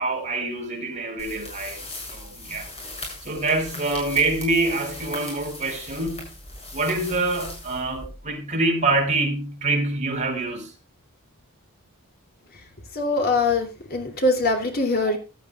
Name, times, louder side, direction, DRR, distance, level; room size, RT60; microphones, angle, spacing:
voice 1, 0.0-1.8 2.1-2.7 3.2-6.3 6.7-10.7, right 2 dB, 30° right, 4.5 m, -25 dB
sound 1, 1.2-8.3, left 2 dB, 25° left, 7.4 m, -38 dB
voice 2, 12.9-15.2, left 2 dB, 45° left, 3.0 m, -22 dB
15.5 x 12.5 x 2.4 m
head